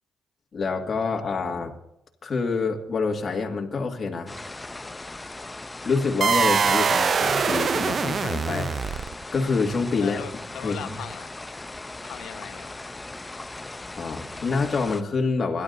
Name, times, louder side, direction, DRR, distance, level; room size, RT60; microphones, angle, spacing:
voice 1, 0.5-1.7 2.2-4.4 5.8-8.7 9.3-10.2 10.6-11.0 14.0-15.6, left 4 dB, 45° left, 0 dB, 2.1 m, -26 dB
sound 1, 4.3-15.0, left 2 dB, 20° left, 0.7 m, -39 dB
sound 2, 6.2-9.4, right 6 dB, 50° right, 0.5 m, -23 dB
voice 2, 10.0-11.3 12.0-12.8, left 10 dB, 80° left, 11 dB, 0.9 m, -39 dB
27.5 x 11.5 x 2.7 m, 0.83 s
cardioid pair, 80°, 0 cm